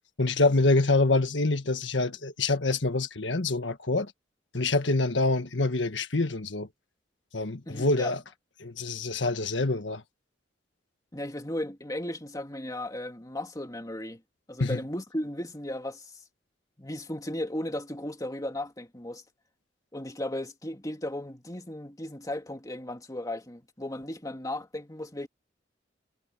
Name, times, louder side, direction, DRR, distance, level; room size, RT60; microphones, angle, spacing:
voice 1, 0.2-4.1 4.5-6.7 7.3-8.2 8.6-10.0 14.6-14.8, left 2 dB, 80° left, 1.6 m, -26 dB
voice 2, 7.7-8.1 11.1-14.2 14.5-16.1 16.8-19.2 19.9-25.3, left 1 dB, 20° left, 2.6 m, -35 dB
head